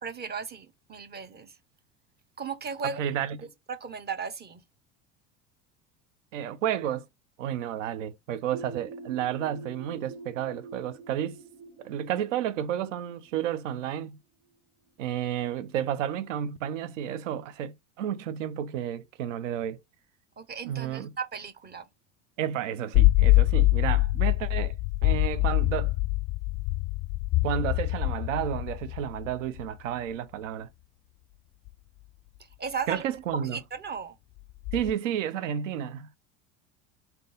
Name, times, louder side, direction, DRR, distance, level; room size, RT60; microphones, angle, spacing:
voice 1, 0.0-1.6 2.4-3.0 3.7-4.6 20.4-21.8 32.6-33.0 33.4-34.2, right 6 dB, 25° right, 0.7 m, -36 dB
voice 2, 3.0-3.4 6.3-7.0 7.4-11.4 11.8-14.2 15.0-19.8 20.7-21.1 22.4-24.7 25.0-25.9 27.4-30.7 32.9-33.6 34.7-36.1, right 10 dB, 80° right, 0.6 m, -31 dB
sound 1, 8.5-14.1, right 3 dB, 65° right, 1.3 m, -46 dB
sound 2, 22.9-29.7 31.7-31.8 34.6-34.9, left 19 dB, 45° left, 0.4 m, -24 dB
3.7 x 2.8 x 3.7 m
hypercardioid pair, 80°, 37 cm